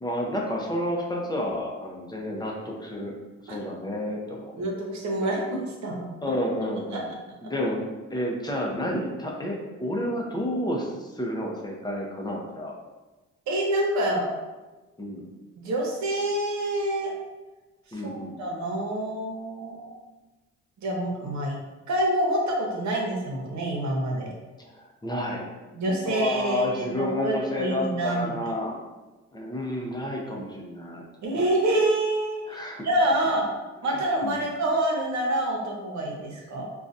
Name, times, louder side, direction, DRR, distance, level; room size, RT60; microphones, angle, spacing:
voice 1, 0.0-3.1 3.5-4.5 6.2-7.1 7.4-12.7 15.0-15.2 17.9-18.4 24.8-25.4 26.1-28.8 29.3-31.0 32.5-32.9 33.9-34.4, left 1 dB, 15° left, -1 dB, 0.7 m, -30 dB
voice 2, 4.6-5.4 5.7-6.0 6.9-7.0 13.5-14.3 15.6-17.1 17.9-20.0 20.8-21.6 21.9-24.3 25.7-28.3 31.2-33.4 33.8-36.6, right 1 dB, 65° right, -1 dB, 0.9 m, -27 dB
3.8 x 2.3 x 2.6 m, 1.2 s
cardioid pair, 90°, 30 cm